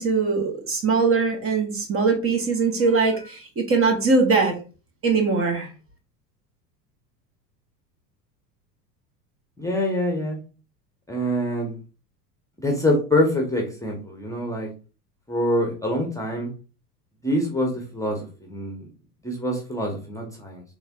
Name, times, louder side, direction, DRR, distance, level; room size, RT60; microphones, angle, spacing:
voice 1, 0.0-4.6 5.0-5.7, right 4 dB, 25° right, 3 dB, 1.1 m, -21 dB
voice 2, 9.6-10.4 11.1-11.7 12.6-14.7 15.3-16.5 17.2-18.9 19.2-20.6, left 1 dB, 5° left, 1 dB, 1.0 m, -25 dB
4.1 x 3.4 x 2.5 m, 0.33 s
hypercardioid pair, 80°, 50 cm